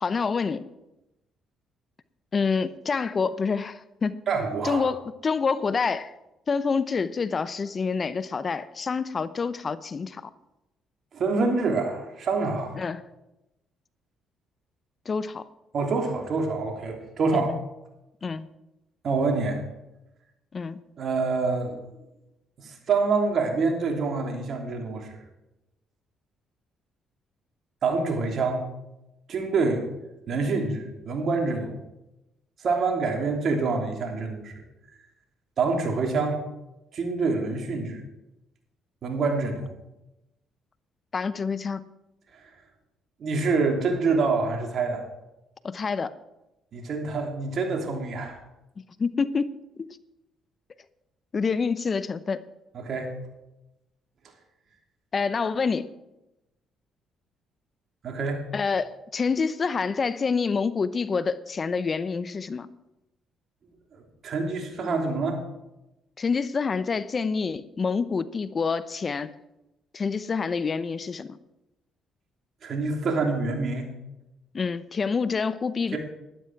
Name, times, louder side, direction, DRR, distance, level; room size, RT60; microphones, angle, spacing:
voice 1, 0.0-0.7 2.3-4.2 4.6-6.1 6.5-10.3 12.8-13.0 15.1-15.4 17.3-17.6 18.2-18.5 20.5-20.8 41.1-41.8 45.6-46.2 49.0-49.9 51.3-52.4 55.1-55.9 58.5-62.7 66.2-69.3 69.9-71.4 74.5-76.0, left 5 dB, 40° left, 15 dB, 0.6 m, -27 dB
voice 2, 4.3-4.8 11.1-12.8 15.7-17.5 19.0-19.6 21.0-21.8 22.6-25.1 27.8-28.6 29.3-29.8 30.3-31.7 32.6-34.5 35.6-36.4 36.9-38.0 39.0-39.7 43.2-45.0 46.7-48.4 52.7-53.1 58.0-58.4 63.9-65.4 72.6-73.9 75.9-76.0, right 4 dB, 55° right, 3 dB, 3.0 m, -26 dB
12.5 x 11.5 x 4.7 m, 0.93 s
supercardioid pair, 70°, 0 cm